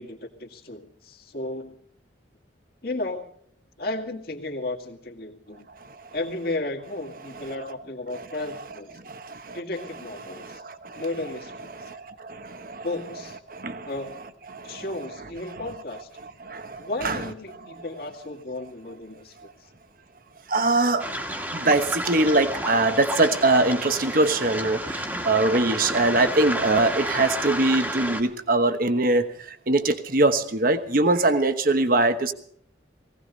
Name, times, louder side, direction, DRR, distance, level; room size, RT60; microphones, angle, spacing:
voice 1, 0.0-1.8 2.8-3.3 3.8-5.7 6.1-9.0 9.5-10.6 10.9-11.9 12.8-13.4 13.8-14.2 14.6-16.1 16.8-19.7, left 2 dB, 55° left, 2 dB, 2.3 m, -34 dB
voice 2, 9.1-9.6 10.3-11.0 11.7-12.9 13.5-13.9 14.5-14.8 16.4-17.2 20.5-21.1 21.5-29.3 29.7-32.3, right 2 dB, 50° right, 9 dB, 1.2 m, -23 dB
Waves surf, 21.0-28.2, equal, 10° right, 1.5 m, -31 dB
19.5 x 17.0 x 4.1 m, 0.63 s
head